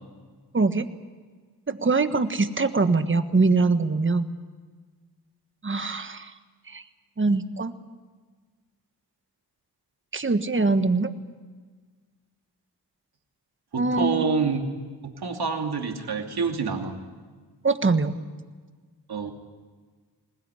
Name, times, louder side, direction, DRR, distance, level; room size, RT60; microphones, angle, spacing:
voice 1, 0.5-0.9 1.7-4.3 5.6-6.3 6.7-6.8 7.2-7.7 10.1-11.1 13.8-14.2 17.6-18.1, right 3 dB, 30° right, 9 dB, 1.4 m, -23 dB
voice 2, 13.7-14.6 15.0-17.0 19.1-19.3, right 5 dB, 70° right, 3 dB, 2.9 m, -27 dB
21.0 x 20.0 x 9.8 m, 1.5 s
wide cardioid pair, 80°, 39 cm